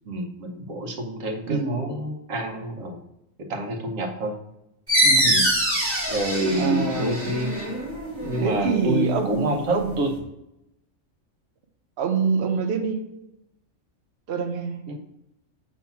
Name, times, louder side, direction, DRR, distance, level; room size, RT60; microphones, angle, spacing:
voice 1, 0.1-3.0 3.4-4.3 5.2-5.5 6.1-7.7 8.2-10.1 14.9-15.0, right 1 dB, 90° right, 3 dB, 1.3 m, -28 dB
voice 2, 1.5-1.9 5.0-5.4 6.6-7.1 8.4-9.9 12.0-13.0 14.3-14.8, right 4 dB, 60° right, 5 dB, 0.9 m, -25 dB
sound 1, 4.9-10.2, right 1 dB, 10° right, 1.6 m, -25 dB
6.9 x 3.2 x 5.7 m, 0.86 s
omnidirectional pair, 1.3 m